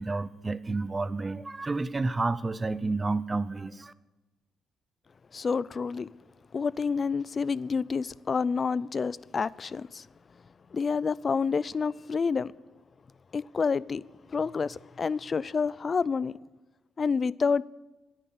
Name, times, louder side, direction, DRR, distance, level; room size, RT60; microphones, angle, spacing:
voice 1, 0.0-3.9, right 3 dB, 25° right, 0.6 m, -30 dB
voice 2, 5.3-6.1 6.5-10.1 10.7-12.5 13.3-14.0 14.3-16.3 17.0-17.6, left 5 dB, 40° left, 0.3 m, -28 dB
10.5 x 9.2 x 8.4 m
cardioid pair, 90°, 0 cm